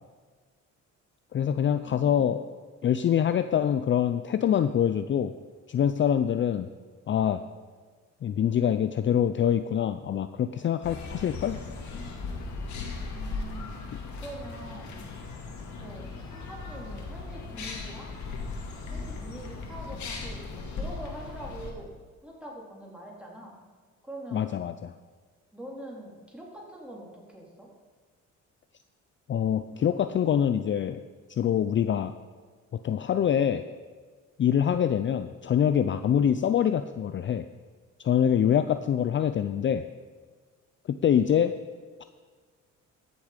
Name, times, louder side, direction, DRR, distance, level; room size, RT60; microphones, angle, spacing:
voice 1, 1.3-2.4 2.8-5.3 5.7-6.7 7.1-7.4 8.2-11.6 24.3-24.9 29.3-31.0 31.3-32.1 32.7-33.6 34.4-37.5 38.0-39.8 40.9-41.6, left 9 dB, 40° left, 10 dB, 0.4 m, -25 dB
sound 1, 10.8-21.7, left 4 dB, 70° left, 2.1 m, -37 dB
voice 2, 13.1-13.8 14.2-14.9 15.8-18.1 18.8-21.9 22.2-23.6 24.0-24.6 25.5-27.7, right 1 dB, 5° right, -3 dB, 3.4 m, -44 dB
14.0 x 7.0 x 5.1 m, 1.5 s
cardioid pair, 90°, 30 cm